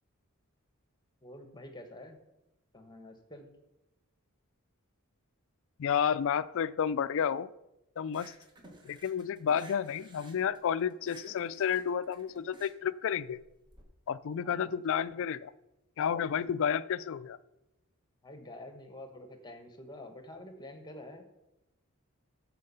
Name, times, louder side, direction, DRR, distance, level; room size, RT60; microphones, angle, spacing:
voice 1, 1.2-2.2 2.7-3.5 14.4-14.7 15.1-15.2 18.2-21.2, left 1 dB, 20° left, 7 dB, 1.1 m, -48 dB
voice 2, 5.8-7.5 8.0-8.3 8.8-13.4 14.1-15.5 16.0-17.4, left 8 dB, 60° left, 18 dB, 0.4 m, -31 dB
sound 1, 8.1-13.8, right 1 dB, 20° right, 1.4 m, -55 dB
13.0 x 4.5 x 5.6 m, 0.93 s
head